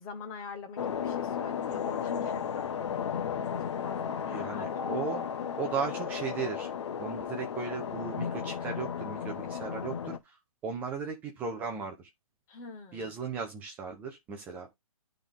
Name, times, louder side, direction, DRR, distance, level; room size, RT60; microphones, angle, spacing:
voice 1, 0.0-5.0 12.5-13.1, left 4 dB, 15° left, 0.9 m, -44 dB
sound 1, 0.8-10.2, left 7 dB, 50° left, 0.8 m, -34 dB
voice 2, 4.3-5.2 5.6-6.7 7.0-10.4 10.6-12.1 12.9-14.7, right 5 dB, 10° right, 0.6 m, -36 dB
10.0 x 3.8 x 3.5 m
hypercardioid pair, 160°, 18 cm